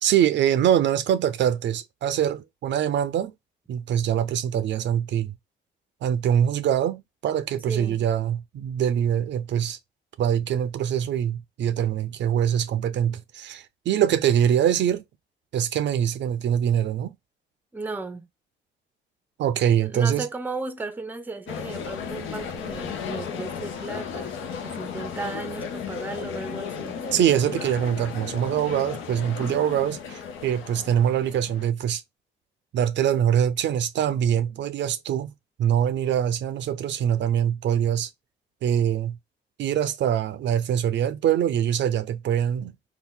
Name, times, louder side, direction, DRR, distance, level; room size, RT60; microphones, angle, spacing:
voice 1, 0.0-3.3 3.7-5.3 6.0-9.8 10.2-15.0 15.5-17.1 19.4-20.3 27.1-32.0 32.7-35.3 35.6-38.1 38.6-39.2 39.6-42.9, right 9 dB, 65° right, 0.5 m, -24 dB
voice 2, 7.7-8.0 17.7-18.3 19.8-27.0, right 3 dB, 10° right, 0.5 m, -35 dB
sound 1, 21.5-31.7, left 7 dB, 80° left, 0.7 m, -35 dB
2.8 x 2.2 x 3.6 m
cardioid pair, 90°, 20 cm